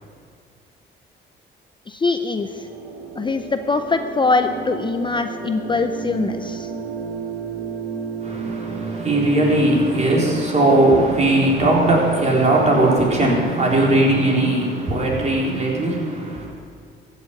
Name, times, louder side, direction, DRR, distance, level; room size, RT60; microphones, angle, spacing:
voice 1, 1.9-2.7 3.2-6.7, left 3 dB, 25° left, 8 dB, 0.6 m, -22 dB
sound 1, 2.3-13.4, right 5 dB, 80° right, 2.0 m, -32 dB
voice 2, 8.2-16.5, right 1 dB, 35° right, -3 dB, 4.0 m, -18 dB
14.5 x 7.3 x 9.2 m, 2.2 s
cardioid pair, 90°, 20 cm